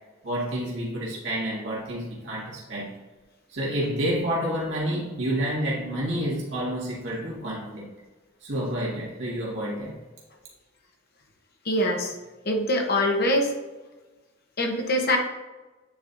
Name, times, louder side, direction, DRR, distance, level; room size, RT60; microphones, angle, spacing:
voice 1, 0.2-2.9 3.5-7.9 8.4-10.0, equal, 65° right, -6 dB, 1.9 m, -29 dB
voice 2, 11.6-12.1 12.4-13.5 14.6-15.2, left 1 dB, 50° left, 2 dB, 1.0 m, -23 dB
9.1 x 4.2 x 2.7 m, 1.2 s
head